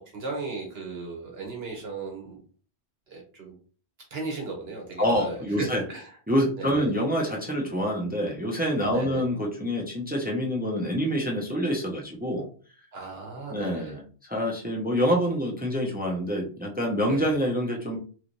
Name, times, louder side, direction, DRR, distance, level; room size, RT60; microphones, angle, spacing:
voice 1, 0.1-2.4 3.1-3.5 4.1-6.0 6.6-6.9 8.9-9.2 12.9-14.0 17.1-17.3, right 3 dB, 70° right, 0 dB, 1.1 m, -36 dB
voice 2, 5.0-5.8 6.3-12.5 13.5-18.0, equal, 10° right, -1 dB, 0.6 m, -26 dB
3.1 x 3.1 x 2.6 m, 0.40 s
omnidirectional pair, 1.1 m